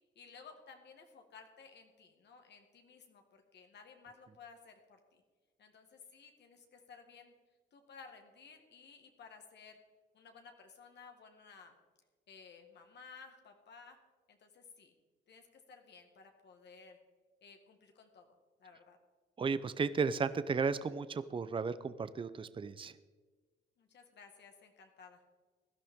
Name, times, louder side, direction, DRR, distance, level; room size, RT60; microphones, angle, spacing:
voice 1, 0.2-5.2 5.6-7.3 7.7-9.8 10.1-11.7 12.3-14.0 14.3-14.9 15.3-17.0 17.4-18.3 18.6-19.0 23.8-25.3, left 5 dB, 60° left, 4 dB, 1.7 m, -56 dB
voice 2, 19.4-22.9, right 5 dB, 25° right, 14 dB, 0.6 m, -34 dB
17.0 x 11.5 x 3.7 m, 1.4 s
cardioid pair, 90°, 20 cm